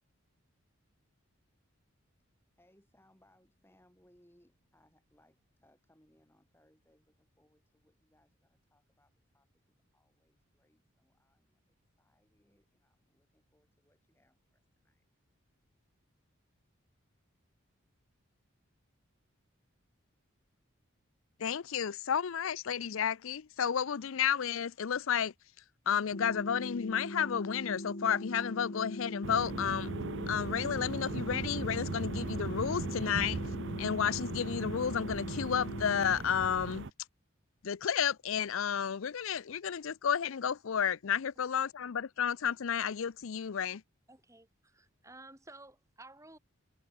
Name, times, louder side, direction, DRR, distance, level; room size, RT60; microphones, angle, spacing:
voice 1, 2.6-9.6 9.9-15.1, left 1 dB, 10° left, 6.8 m, -69 dB
voice 2, 21.4-25.3 25.9-29.9 30.3-33.4 33.8-36.9 37.6-43.8, left 8 dB, 70° left, 0.5 m, -32 dB
sound 1, 26.1-36.1, left 1 dB, 45° left, 1.7 m, -41 dB
sound 2, 29.2-36.9, right 3 dB, 55° right, 0.6 m, -39 dB
voice 3, 44.1-46.4, right 2 dB, 15° right, 6.0 m, -54 dB
head